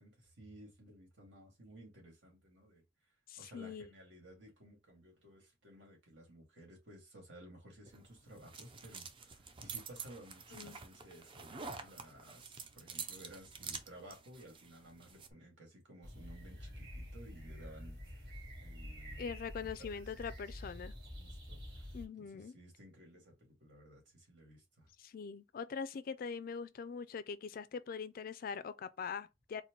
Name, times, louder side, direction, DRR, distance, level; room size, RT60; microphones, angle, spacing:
voice 1, 0.0-2.8 3.4-18.3 18.6-19.3 19.8-19.9 21.2-21.9 22.2-24.9, right 1 dB, 80° right, 1.8 m, -56 dB
voice 2, 3.3-3.9 10.5-10.8 19.2-20.9 21.9-22.6 25.0-29.6, left 6 dB, 50° left, 0.3 m, -43 dB
sound 1, 7.9-15.3, right 5 dB, 30° right, 0.5 m, -48 dB
sound 2, 16.0-22.1, equal, 60° right, 1.7 m, -48 dB
4.2 x 2.1 x 3.0 m
head